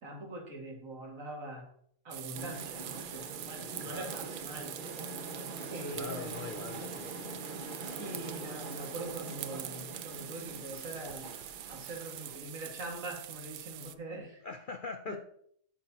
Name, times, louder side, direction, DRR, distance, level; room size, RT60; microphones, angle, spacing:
voice 1, 0.0-1.7 2.0-4.8 5.7-6.2 8.0-11.3 11.7-14.4 15.1-15.2, right 1 dB, 70° right, 1 dB, 2.4 m, -43 dB
sound 1, 2.1-13.9, right 13 dB, 85° right, 1.1 m, -44 dB
Train, 2.3-12.3, right 2 dB, 35° right, 1.5 m, -44 dB
voice 2, 3.8-4.1 5.9-7.5 14.4-15.2, left 4 dB, 65° left, 7 dB, 0.5 m, -42 dB
10.5 x 8.5 x 2.8 m, 0.66 s
omnidirectional pair, 1.5 m